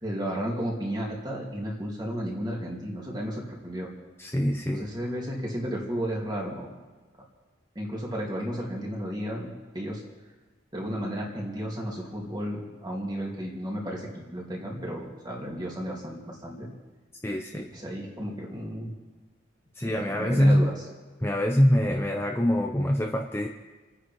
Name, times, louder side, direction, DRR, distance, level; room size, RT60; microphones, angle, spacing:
voice 1, 0.0-3.9 4.7-6.7 7.7-10.0 10.7-16.7 17.7-18.9 19.8-20.7, equal, 20° right, -2 dB, 3.0 m, -33 dB
voice 2, 4.2-4.9 17.2-17.7 19.8-20.7 21.2-23.5, equal, 10° left, 2 dB, 0.7 m, -24 dB
29.0 x 9.8 x 4.7 m, 1.3 s
head